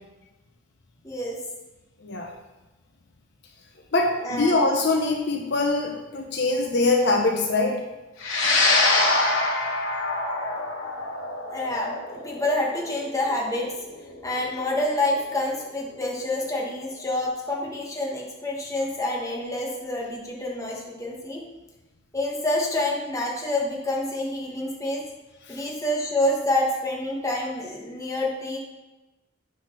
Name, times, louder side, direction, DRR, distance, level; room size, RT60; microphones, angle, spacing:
voice 1, 1.0-1.4 4.2-4.5 11.5-13.7 14.2-21.4 22.1-25.0 25.5-28.6, left 1 dB, 15° left, -2 dB, 1.3 m, -27 dB
voice 2, 2.0-2.3 3.9-7.8 8.4-8.5 25.4-25.7, left 2 dB, 55° left, 2 dB, 0.8 m, -23 dB
sound 1, 8.2-16.8, left 2 dB, 90° left, 2.1 m, -26 dB
8.4 x 4.2 x 5.9 m, 1.1 s
head